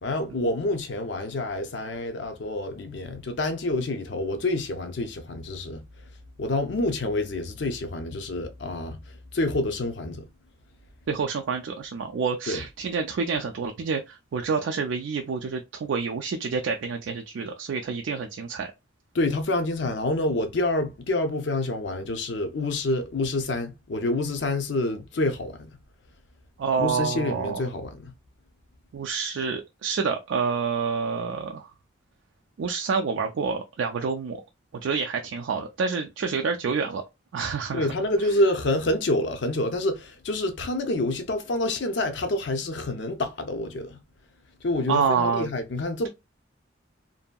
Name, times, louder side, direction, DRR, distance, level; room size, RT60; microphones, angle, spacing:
voice 1, 0.0-5.8 6.4-10.3 12.5-12.6 19.1-25.6 26.8-28.1 37.7-44.0 44.6-46.1, left 2 dB, 65° left, 0.5 m, -27 dB
voice 2, 11.1-18.7 26.6-27.6 28.9-31.7 32.6-34.4 34.8-37.0 37.3-37.9 44.9-45.5, right 5 dB, 75° right, 0.3 m, -28 dB
2.6 x 2.6 x 2.2 m
head